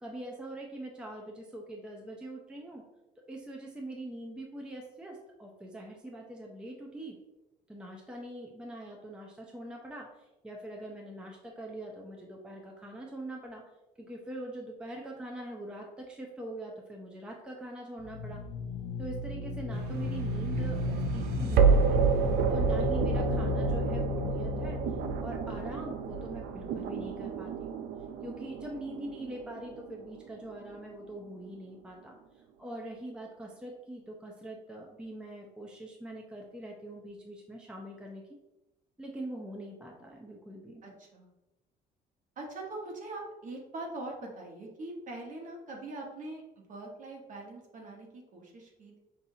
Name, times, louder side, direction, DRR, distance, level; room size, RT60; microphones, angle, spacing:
voice 1, 0.0-2.8 3.2-7.2 7.7-13.6 14.0-18.4 19.0-22.0 22.5-24.8 25.2-27.8 28.2-38.2 39.0-40.8, right 1 dB, 5° right, -1 dB, 0.5 m, -43 dB
sound 1, 18.0-26.7, left 4 dB, 60° left, 0.4 m, -34 dB
sound 2, 19.7-30.8, right 6 dB, 70° right, 0.4 m, -30 dB
voice 2, 20.5-21.7 40.8-41.3 42.4-49.0, right 2 dB, 50° right, 0 dB, 1.2 m, -43 dB
5.5 x 2.6 x 2.7 m, 0.97 s
cardioid pair, 110°, 17 cm